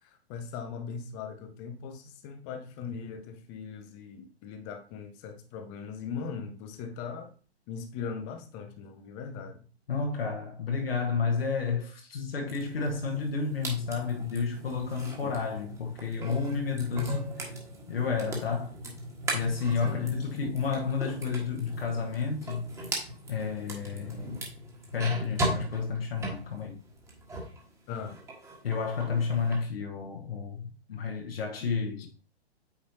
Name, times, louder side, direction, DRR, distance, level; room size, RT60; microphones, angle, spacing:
voice 1, 0.0-7.3 7.7-9.6 15.2-15.3 19.8-20.6 27.9-28.2 31.8-32.1, left 6 dB, 10° left, 0.4 m, -40 dB
voice 2, 9.9-17.4 17.9-18.7 19.3-22.6 23.3-24.5 24.9-26.8 28.6-32.1, left 5 dB, 60° left, 1.2 m, -31 dB
sound 1, 12.5-27.6 27.9-29.6, right 1 dB, 10° right, 1.4 m, -38 dB
8.5 x 4.2 x 2.7 m
figure-of-eight pair, 115°, 33 cm